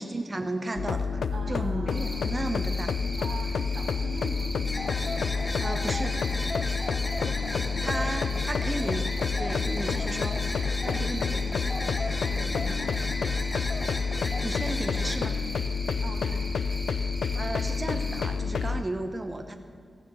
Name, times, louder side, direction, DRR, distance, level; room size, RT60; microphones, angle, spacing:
voice 1, 0.0-1.2 1.5-3.0 5.6-6.2 7.8-9.1 9.4-10.4 10.8-11.4 14.4-15.4 17.3-19.6, right 2 dB, 20° right, 6 dB, 0.7 m, -34 dB
sound 1, 0.8-18.8, left 5 dB, 85° left, 0.4 m, -29 dB
voice 2, 1.1-2.4 3.2-4.6 7.4-7.8 8.2-8.5 10.8-11.9 12.3-13.0 14.1-14.3 16.0-16.5, right 2 dB, 85° right, 1 dB, 2.0 m, -43 dB
Cricket, 1.9-18.3, equal, 5° left, 2.7 m, -41 dB
sound 2, 4.7-15.3, left 2 dB, 25° left, 0.8 m, -35 dB
15.0 x 6.9 x 7.4 m, 2.1 s
wide cardioid pair, 130°, 0 cm